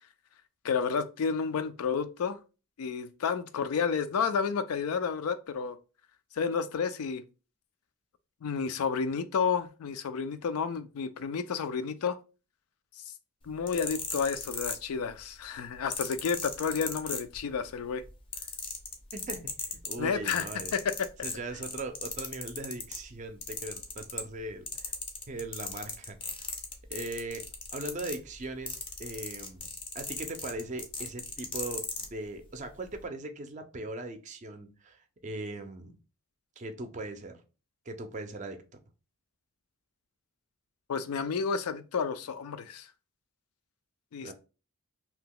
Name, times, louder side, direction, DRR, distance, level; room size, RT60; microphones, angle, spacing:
voice 1, 0.6-2.4 2.8-5.8 6.4-7.2 8.4-12.2 13.4-18.0 20.0-20.5 20.7-21.1 40.9-42.9 44.1-44.3, left 6 dB, 85° left, 0.4 m, -31 dB
sound 1, 13.5-15.2 15.9-17.7 18.0-23.0 23.4-24.4 24.7-32.1 32.8-33.0, left 4 dB, 25° left, 0.4 m, -37 dB
voice 2, 19.1-20.7 21.2-24.9 25.3-26.2 26.9-29.7 29.9-36.0 36.6-37.4 37.9-38.6 44.2-44.3, right 2 dB, 35° right, 0.4 m, -39 dB
2.8 x 2.2 x 3.6 m
head